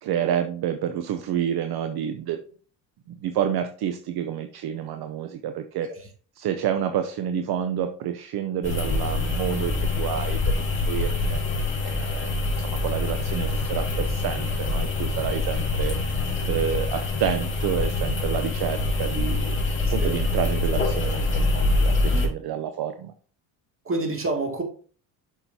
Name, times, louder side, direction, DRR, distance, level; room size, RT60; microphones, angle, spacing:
voice 1, 0.0-2.4 3.1-5.9 6.4-19.6 19.9-23.1, right 9 dB, 55° right, 8 dB, 0.8 m, -29 dB
sound 1, 8.6-22.3, left 3 dB, 25° left, 2.8 m, -25 dB
voice 2, 19.9-20.2 23.8-24.6, right 2 dB, 30° right, 2 dB, 2.4 m, -27 dB
6.9 x 5.9 x 2.8 m, 0.41 s
supercardioid pair, 90°, 45 cm